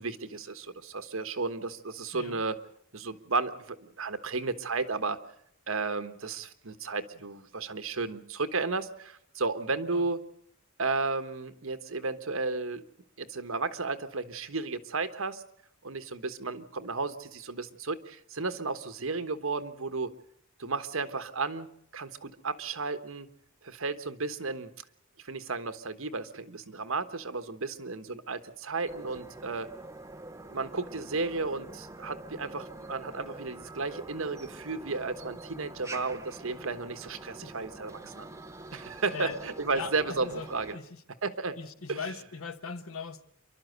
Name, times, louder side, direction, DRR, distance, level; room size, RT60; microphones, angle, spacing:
voice 1, 0.0-2.6 2.9-5.2 5.7-10.2 10.8-12.8 13.2-15.4 15.8-20.1 20.6-21.7 21.9-23.3 23.6-24.7 25.3-29.7 30.5-38.3 38.7-40.8 41.2-41.5 41.9-42.0, right 3 dB, 65° right, 1.3 m, -33 dB
voice 2, 9.7-10.1 37.4-37.5 38.0-38.1 39.1-39.4 39.7-40.5 40.7-41.0 41.6-43.2, left 5 dB, 85° left, 1.2 m, -40 dB
sound 1, 28.9-40.8, right 2 dB, 15° right, 0.7 m, -45 dB
27.5 x 12.0 x 8.1 m
head